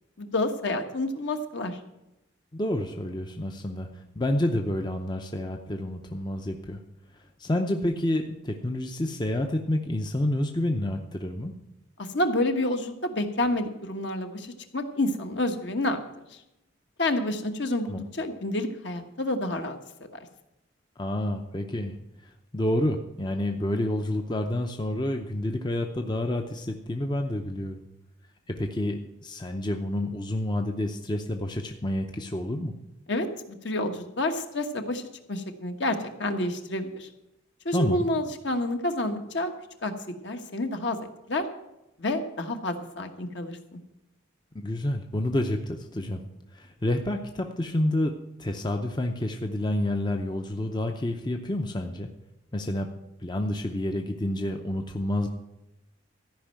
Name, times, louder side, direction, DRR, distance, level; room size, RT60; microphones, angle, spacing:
voice 1, 0.2-1.8 12.0-16.0 16.3-16.4 17.0-19.8 33.1-35.0 35.3-37.1 37.6-39.5 39.8-39.9 40.2-41.0 41.3-41.4 42.0-43.8, left 1 dB, 60° left, 6 dB, 1.2 m, -29 dB
voice 2, 2.5-6.8 7.1-11.5 17.9-18.0 21.0-22.0 22.2-27.8 28.5-32.7 37.7-38.1 44.5-46.2 46.5-48.1 48.4-52.1 52.5-52.9 53.2-55.3, left 1 dB, 20° left, 4 dB, 0.6 m, -29 dB
14.0 x 5.4 x 9.0 m, 0.91 s
head